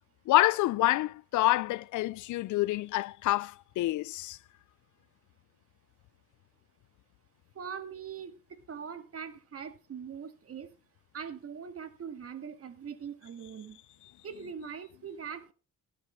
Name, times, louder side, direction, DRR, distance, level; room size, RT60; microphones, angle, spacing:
voice 1, 0.3-4.4, left 17 dB, 75° left, 0.5 m, -27 dB
voice 2, 7.6-8.4 8.7-10.7 11.1-13.8 14.2-15.5, right 7 dB, 50° right, 1.9 m, -42 dB
18.5 x 7.9 x 3.2 m
cardioid pair, 90°, 30 cm